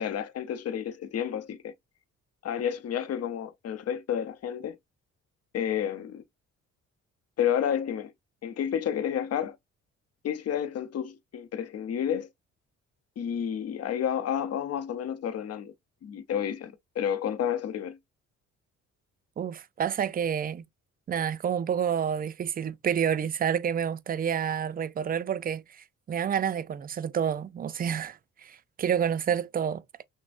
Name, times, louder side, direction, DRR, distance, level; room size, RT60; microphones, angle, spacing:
voice 1, 0.0-1.7 2.4-4.8 5.5-6.2 7.4-8.1 8.4-9.6 10.2-12.3 13.2-15.7 16.0-18.0, left 9 dB, 55° left, 0.7 m, -30 dB
voice 2, 19.4-20.6 21.1-30.0, right 8 dB, 30° right, 0.4 m, -29 dB
6.0 x 2.1 x 2.5 m
cardioid pair, 90°, 30 cm